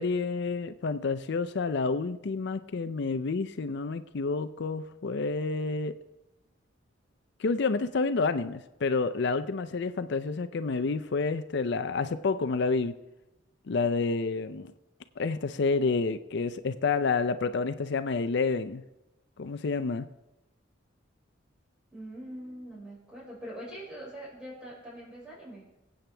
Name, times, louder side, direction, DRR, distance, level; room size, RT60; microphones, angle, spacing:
voice 1, 0.0-5.9 7.4-12.9 13.7-14.7 15.2-18.8 19.4-20.1, left 4 dB, 60° left, 11 dB, 0.5 m, -29 dB
voice 2, 21.9-25.7, equal, 5° right, -7 dB, 5.5 m, -43 dB
24.5 x 8.6 x 3.4 m, 0.99 s
head